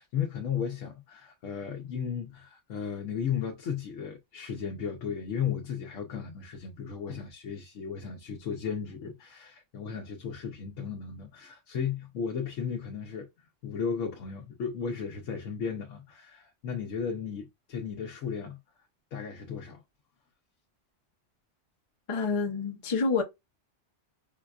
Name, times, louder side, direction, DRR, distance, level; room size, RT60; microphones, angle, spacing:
voice 1, 0.0-13.3 13.6-18.6 19.1-19.8, left 7 dB, 85° left, 1.1 m, -35 dB
voice 2, 22.1-23.2, left 4 dB, 35° left, 0.6 m, -28 dB
5.4 x 2.3 x 2.3 m
omnidirectional pair, 1.2 m